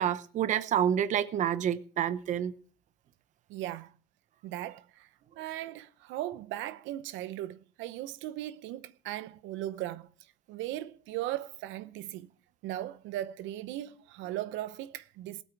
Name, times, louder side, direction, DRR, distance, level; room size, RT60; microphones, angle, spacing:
voice 1, 0.0-2.5, right 9 dB, 35° right, 0.8 m, -28 dB
voice 2, 3.5-3.9 4.4-5.1 5.4-10.1 10.5-12.3 12.6-15.4, right 14 dB, 65° right, 0.7 m, -38 dB
19.5 x 8.7 x 4.6 m
cardioid pair, 170°, 21 cm